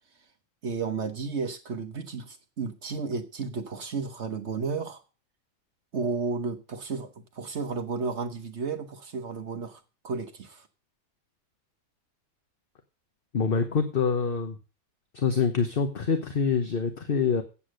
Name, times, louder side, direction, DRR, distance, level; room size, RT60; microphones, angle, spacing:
voice 1, 0.6-5.0 5.9-10.7, right 4 dB, 50° right, 8 dB, 1.2 m, -33 dB
voice 2, 13.3-14.6 15.1-17.4, left 5 dB, 40° left, 7 dB, 1.0 m, -25 dB
8.5 x 8.3 x 6.3 m, 0.33 s
omnidirectional pair, 1.6 m